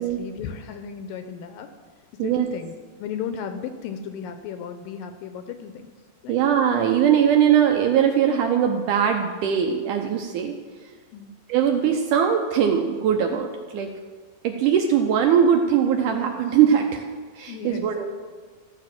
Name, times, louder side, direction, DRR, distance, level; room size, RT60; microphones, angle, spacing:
voice 1, 0.0-1.7 2.1-2.7 3.0-5.9 6.2-6.4 11.1-11.3 17.5-17.9, left 7 dB, 80° left, 8 dB, 2.2 m, -35 dB
voice 2, 6.3-10.6 11.5-13.9 14.4-17.0 17.4-18.1, right 8 dB, 75° right, 3 dB, 2.0 m, -21 dB
14.5 x 7.2 x 6.0 m, 1.5 s
omnidirectional pair, 4.3 m